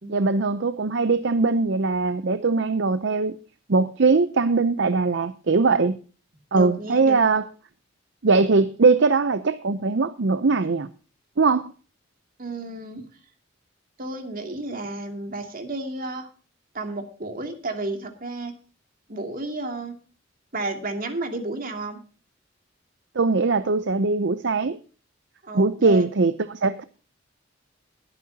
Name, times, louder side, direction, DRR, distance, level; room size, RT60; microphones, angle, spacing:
voice 1, 0.1-3.4 3.7-6.0 6.5-7.5 8.2-10.9 11.4-11.7 23.2-24.8 25.5-26.8, right 4 dB, 60° right, 0.6 m, -21 dB
voice 2, 6.5-7.2 12.4-13.0 14.0-16.3 16.7-18.5 19.1-19.9 20.5-22.0 25.4-26.1, right 2 dB, 45° right, 2.5 m, -32 dB
22.0 x 9.7 x 2.8 m
head